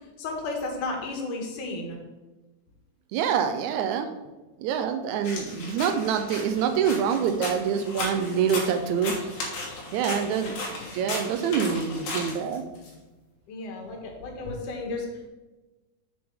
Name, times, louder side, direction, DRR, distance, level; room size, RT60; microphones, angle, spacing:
voice 1, 0.2-2.0 10.2-10.5 13.5-15.3, left 2 dB, 85° left, 2 dB, 2.9 m, -33 dB
voice 2, 3.1-4.1 4.6-9.1 9.9-10.6 10.9-12.6, right 7 dB, 80° right, 7 dB, 2.0 m, -26 dB
sound 1, 5.2-12.9, left 2 dB, 60° left, 2.6 m, -36 dB
7.9 x 6.9 x 3.7 m, 1.1 s
omnidirectional pair, 3.5 m